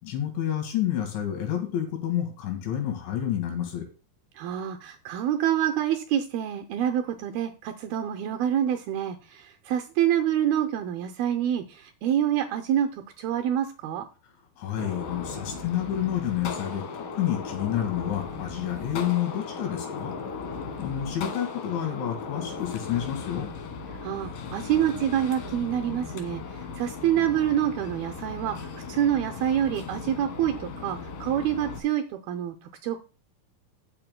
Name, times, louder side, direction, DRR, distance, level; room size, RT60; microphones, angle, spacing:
voice 1, 0.0-3.9 14.6-20.1 20.8-23.5, left 11 dB, 85° left, 4 dB, 4.3 m, -29 dB
voice 2, 4.4-14.1 24.0-32.6 32.8-33.0, right 10 dB, 80° right, 4 dB, 2.2 m, -27 dB
Gunshot gunfire, 14.8-31.8, left 5 dB, 65° left, 2.6 m, -37 dB
18.5 x 6.9 x 2.2 m, 0.34 s
omnidirectional pair, 5.2 m